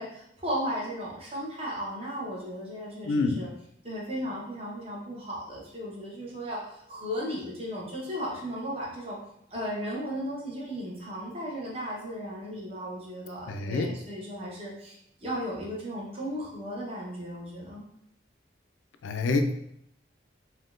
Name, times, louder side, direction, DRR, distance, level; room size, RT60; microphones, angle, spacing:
voice 1, 0.0-3.5 3.8-9.2 9.5-14.9 15.2-17.8, equal, 30° right, -5 dB, 0.9 m, -35 dB
voice 2, 3.0-3.5 13.5-14.0 19.0-19.5, left 3 dB, 85° left, 6 dB, 0.3 m, -27 dB
3.5 x 2.2 x 2.4 m, 0.73 s
head